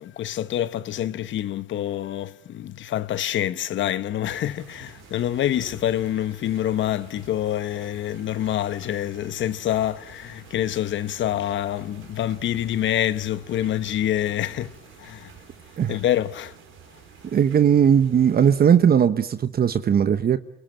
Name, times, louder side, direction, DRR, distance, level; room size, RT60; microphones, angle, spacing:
voice 1, 0.0-15.3 15.9-16.5, left 11 dB, 70° left, 1.0 m, -26 dB
sound 1, 4.2-18.7, right 8 dB, 90° right, 4.4 m, -49 dB
voice 2, 17.3-20.4, right 8 dB, 50° right, 1.0 m, -18 dB
29.0 x 17.5 x 8.8 m
cardioid pair, 90°, 20 cm